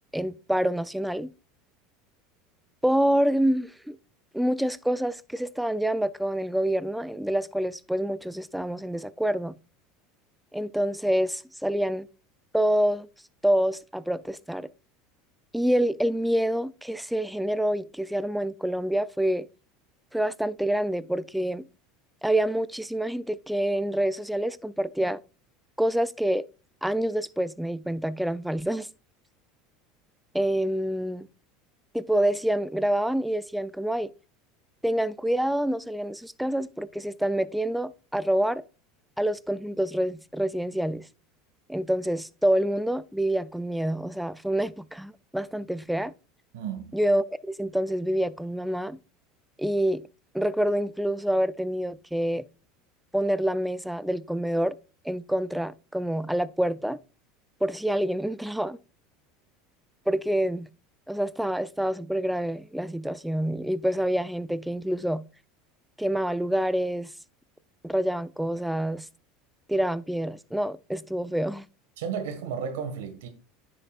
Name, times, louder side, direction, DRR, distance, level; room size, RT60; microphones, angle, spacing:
voice 1, 0.1-1.3 2.8-4.0 4.3-9.5 10.5-12.1 12.5-13.1 13.4-14.7 15.5-19.5 20.1-21.7 22.2-25.2 25.8-26.4 26.8-28.9 30.3-31.3 31.9-34.1 34.8-38.6 39.2-41.1 41.7-46.1 46.9-49.0 49.6-50.0 50.3-52.4 53.1-54.8 55.0-57.0 57.6-58.8 60.1-60.7 61.1-65.3 66.0-67.1 67.8-69.1 69.7-71.7, right 1 dB, ahead, 0.4 m, -27 dB
voice 2, 46.5-47.0 72.0-73.3, right 7 dB, 85° right, 1.6 m, -33 dB
9.8 x 6.8 x 2.4 m
supercardioid pair, 105°, 0 cm